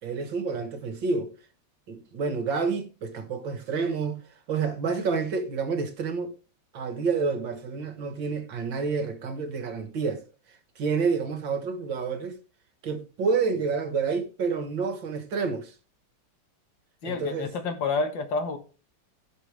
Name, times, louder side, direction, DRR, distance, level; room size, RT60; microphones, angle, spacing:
voice 1, 0.0-1.3 1.9-6.3 6.7-10.3 10.8-12.4 12.8-15.7 17.0-17.5, right 5 dB, 60° right, 2.2 m, -29 dB
voice 2, 17.0-18.6, left 4 dB, 60° left, 2.1 m, -29 dB
17.0 x 5.9 x 3.4 m
omnidirectional pair, 2.3 m